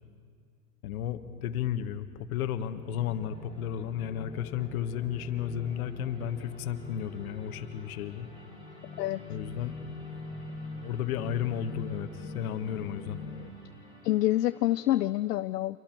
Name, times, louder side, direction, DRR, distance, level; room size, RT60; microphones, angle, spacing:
voice 1, 0.8-8.3 9.3-9.7 10.8-13.2, left 9 dB, 60° left, 9 dB, 1.6 m, -33 dB
sound 1, 2.4-13.5, left 3 dB, 45° left, 2.9 m, -44 dB
sound 2, 3.0-15.0, equal, 10° right, 4.4 m, -52 dB
voice 2, 14.0-15.8, left 15 dB, 80° left, 13 dB, 0.6 m, -27 dB
28.0 x 23.0 x 4.5 m, 2.2 s
hypercardioid pair, 120°, 47 cm